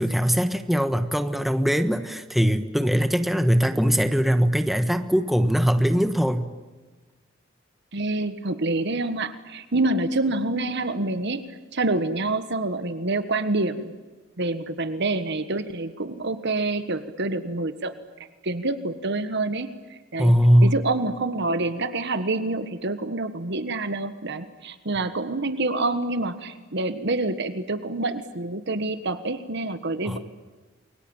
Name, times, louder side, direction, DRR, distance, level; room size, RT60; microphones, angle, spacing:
voice 1, 0.0-6.5 20.2-20.7 30.0-30.2, equal, ahead, 8 dB, 1.3 m, -21 dB
voice 2, 7.9-13.9 14.4-17.9 18.4-20.3 20.6-30.2, right 2 dB, 60° right, 11 dB, 1.5 m, -27 dB
29.0 x 23.0 x 8.9 m, 1.3 s
head